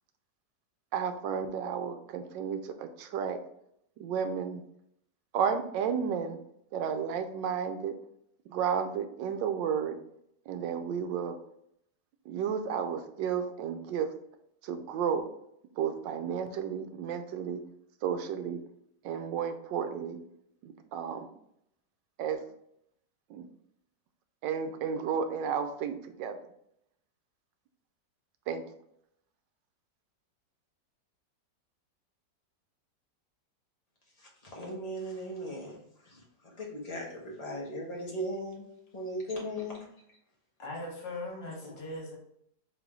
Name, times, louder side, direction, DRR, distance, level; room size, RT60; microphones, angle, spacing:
voice 1, 0.9-3.4 4.0-4.6 5.3-6.4 6.7-8.0 8.4-10.0 10.5-11.4 12.2-14.1 14.6-15.3 15.7-17.6 18.0-18.6 19.0-20.2 20.6-21.3 22.2-22.5 23.3-23.5 24.4-26.4 28.5-28.6, right 7 dB, 85° right, 8 dB, 1.3 m, -32 dB
voice 2, 34.2-38.6 38.9-40.2 41.6-41.8, equal, 25° left, -3 dB, 1.1 m, -38 dB
voice 3, 40.6-42.2, left 2 dB, 80° left, -1 dB, 2.0 m, -39 dB
3.9 x 3.4 x 3.6 m, 0.74 s
omnidirectional pair, 1.9 m